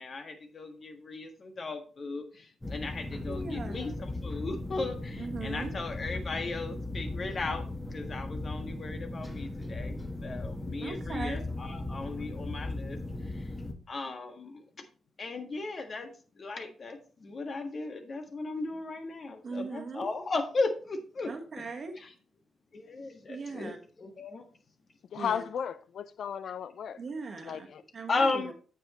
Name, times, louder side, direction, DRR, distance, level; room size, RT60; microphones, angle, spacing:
voice 1, 0.0-13.5 13.9-14.8 15.2-21.3 22.0-22.1 22.7-24.4 28.1-28.5, left 3 dB, 45° left, 1.6 m, -36 dB
sound 1, 2.6-13.7, left 2 dB, 15° left, 1.8 m, -37 dB
voice 2, 3.3-3.9 5.2-5.7 10.8-11.4 19.4-20.1 21.3-22.0 23.3-23.8 25.2-25.4 27.0-27.7 27.9-28.5, right 4 dB, 50° right, 1.4 m, -39 dB
voice 3, 25.1-27.0 27.4-27.8, left 8 dB, 60° left, 0.6 m, -35 dB
8.8 x 7.7 x 3.1 m
hypercardioid pair, 40°, 0 cm